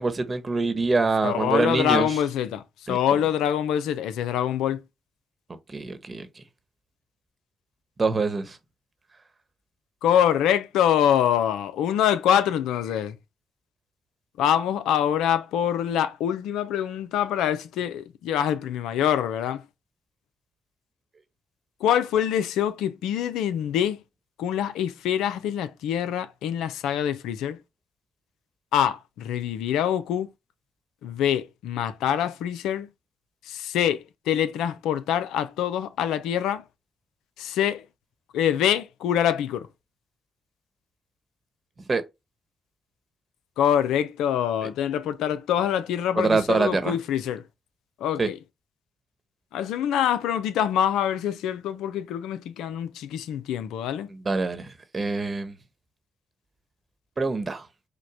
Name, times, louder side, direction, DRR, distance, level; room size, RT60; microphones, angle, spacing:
voice 1, 0.0-2.2 2.9-3.2 5.7-6.4 8.0-8.6 41.9-42.0 44.6-44.7 46.1-47.0 48.2-48.3 54.1-55.6 57.2-57.7, right 3 dB, 40° right, 1.0 m, -25 dB
voice 2, 1.2-2.6 2.9-4.8 10.0-13.2 14.4-19.6 21.8-24.0 24.4-27.6 28.7-30.3 31.0-32.9 33.5-36.6 37.4-37.8 38.3-39.7 43.6-47.4 48.0-48.4 49.5-54.1, left 10 dB, 85° left, 0.5 m, -25 dB
4.9 x 2.2 x 4.8 m
supercardioid pair, 50°, 0 cm